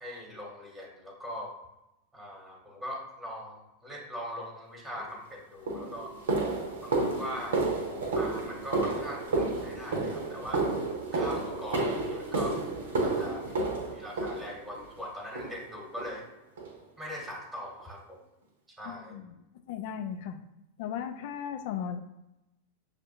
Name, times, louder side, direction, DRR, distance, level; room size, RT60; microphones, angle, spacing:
voice 1, 0.0-1.5 2.1-6.1 6.8-7.6 8.1-10.7 11.1-12.6 13.0-13.5 13.9-16.2 17.0-18.2 18.8-19.1, equal, 5° right, -1 dB, 1.1 m, -41 dB
sound 1, 5.0-5.1 5.7-14.9 15.4-15.7 16.0-16.2 16.6-16.8 17.2-17.3 17.8-17.9, right 3 dB, 60° right, 0.8 m, -31 dB
voice 2, 18.8-19.3 19.7-20.4 20.8-22.0, left 8 dB, 50° left, 7 dB, 0.5 m, -36 dB
6.4 x 2.5 x 2.8 m, 0.90 s
figure-of-eight pair, 90°, 0 cm